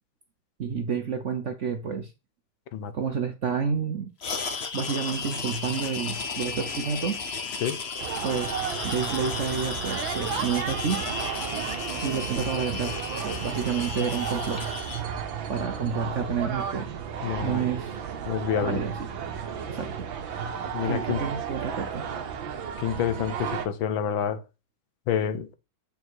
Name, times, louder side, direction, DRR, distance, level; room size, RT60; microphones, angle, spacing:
voice 1, 0.6-2.1 2.9-4.1 4.7-7.2 8.2-11.0 12.0-14.7 15.5-16.9 17.4-18.0 18.6-19.0 19.7-20.1 20.4-20.5 20.8-22.0, right 6 dB, 55° right, 0.9 m, -29 dB
sound 1, 4.2-15.0, left 5 dB, 40° left, 1.0 m, -34 dB
sound 2, 8.0-23.7, right 7 dB, 85° right, 1.9 m, -33 dB
voice 2, 17.2-17.7 18.3-18.8 20.7-21.3 22.8-24.4 25.1-25.5, left 8 dB, 80° left, 1.7 m, -28 dB
7.8 x 5.4 x 4.7 m
omnidirectional pair, 2.1 m